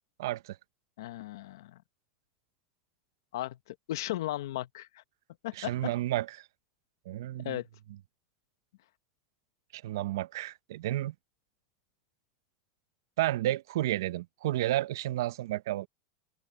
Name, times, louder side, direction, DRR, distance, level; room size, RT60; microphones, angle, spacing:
voice 1, 0.2-0.6 5.6-6.4 7.1-7.6 9.7-11.1 13.2-15.9, right 15 dB, 80° right, 0.7 m, -31 dB
voice 2, 1.0-1.8 3.3-3.6 3.9-5.0 5.4-5.9 7.4-7.7, left 15 dB, 80° left, 0.8 m, -36 dB
supercardioid pair, 125°, 2 cm